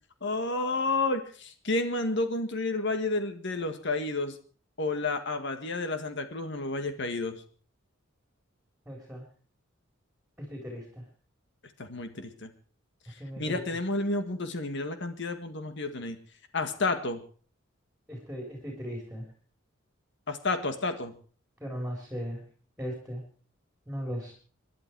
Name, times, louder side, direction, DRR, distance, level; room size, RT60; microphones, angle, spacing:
voice 1, 0.2-4.4 4.8-7.4 11.8-12.5 13.4-16.2 16.5-17.2 20.3-21.1, left 2 dB, 60° left, 8 dB, 1.7 m, -30 dB
voice 2, 8.9-9.2 10.4-11.0 13.2-13.6 18.1-19.2 21.6-22.4 22.8-23.2 23.9-24.3, equal, 5° right, 0 dB, 4.1 m, -37 dB
26.5 x 11.0 x 4.7 m, 0.43 s
head